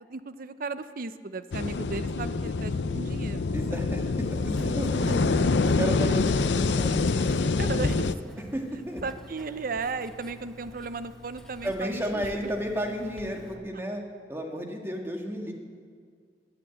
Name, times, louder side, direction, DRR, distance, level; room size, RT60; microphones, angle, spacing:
voice 1, 0.1-3.5 4.0-4.1 5.7-5.8 7.6-8.4 9.0-12.5, right 4 dB, 55° right, 12 dB, 0.6 m, -35 dB
sound 1, 1.5-8.1, left 3 dB, 80° left, 0.5 m, -26 dB
voice 2, 3.5-5.2 5.6-7.3 8.5-9.0 11.6-14.0 14.3-15.5, equal, 15° right, 2 dB, 1.7 m, -33 dB
Writing, 4.2-13.5, left 1 dB, 5° left, 1.2 m, -48 dB
18.5 x 9.0 x 7.9 m, 2.1 s
head